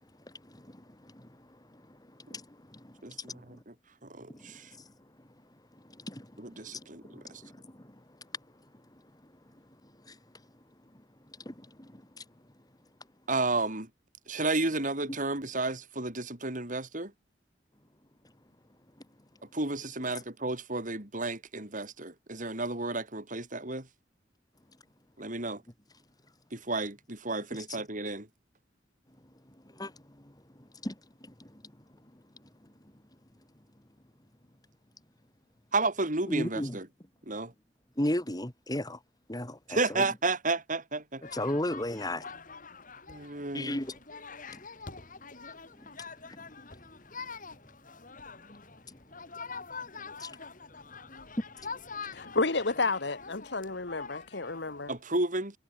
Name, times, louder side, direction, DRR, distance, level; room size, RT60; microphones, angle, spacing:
voice 1, 3.0-3.7 4.0-4.7 6.4-7.0 7.3-7.4 13.3-13.9 14.3-17.1 19.5-23.9 25.2-25.6 26.5-28.3 35.7-36.9 37.3-37.5 39.7-41.2 43.1-43.8 54.9-55.6, right 2 dB, 45° right, 4.2 m, -32 dB
voice 2, 36.3-36.7 38.0-39.0 39.3-39.6 41.3-42.2 43.5-43.9 50.2-50.3, left 1 dB, 20° left, 3.1 m, -32 dB
sound 1, 41.2-55.0, left 4 dB, 45° left, 4.5 m, -45 dB
voice 3, 52.1-54.9, left 3 dB, 65° left, 1.6 m, -31 dB
head